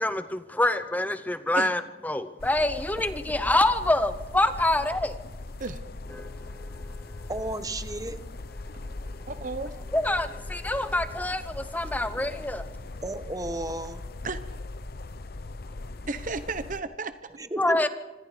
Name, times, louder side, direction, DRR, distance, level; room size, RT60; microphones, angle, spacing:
voice 1, 0.0-5.2 6.2-6.9 9.9-12.6 17.6-17.9, left 1 dB, 10° left, 0.7 m, -26 dB
sound 1, 2.4-16.8, left 2 dB, 55° left, 0.8 m, -39 dB
voice 2, 7.3-8.2 13.0-14.0 17.4-17.9, right 1 dB, 20° right, 1.2 m, -33 dB
voice 3, 9.3-9.7 14.2-14.4 16.1-17.1, right 3 dB, 45° right, 0.9 m, -33 dB
26.0 x 26.0 x 5.1 m
head